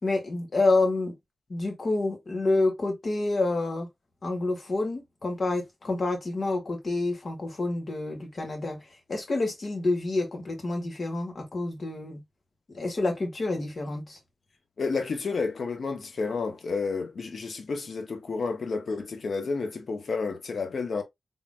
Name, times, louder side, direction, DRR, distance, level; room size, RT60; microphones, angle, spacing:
voice 1, 0.0-1.1 1.5-3.9 4.2-8.8 9.1-12.2 12.7-14.2, left 2 dB, 50° left, 2.0 m, -28 dB
voice 2, 14.8-21.0, left 4 dB, 70° left, 1.0 m, -30 dB
3.9 x 3.7 x 2.3 m
wide cardioid pair, 85°, 0 cm